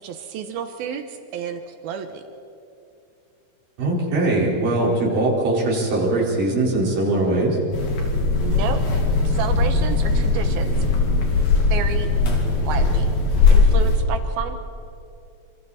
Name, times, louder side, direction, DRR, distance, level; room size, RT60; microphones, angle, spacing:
voice 1, 0.0-2.2 8.4-8.8 9.2-10.7 11.7-12.1 12.6-13.1 13.5-14.5, right 7 dB, 75° right, 7 dB, 2.8 m, -30 dB
voice 2, 3.8-7.6, right 2 dB, 55° right, -4 dB, 6.2 m, -21 dB
sound 1, 7.7-14.0, left 3 dB, 70° left, 4.6 m, -19 dB
27.0 x 26.5 x 4.3 m, 2.7 s
omnidirectional pair, 4.6 m